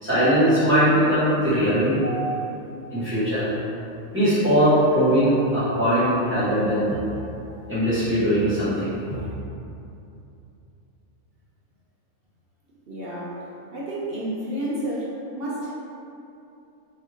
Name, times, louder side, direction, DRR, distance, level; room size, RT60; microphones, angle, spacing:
voice 1, 0.0-2.4 2.9-3.5 4.1-6.9 7.7-9.2, equal, 10° right, -14 dB, 1.3 m, -20 dB
voice 2, 12.9-13.4 13.7-15.7, right 1 dB, 55° right, -6 dB, 0.7 m, -30 dB
3.3 x 2.8 x 3.6 m, 2.7 s
omnidirectional pair, 1.4 m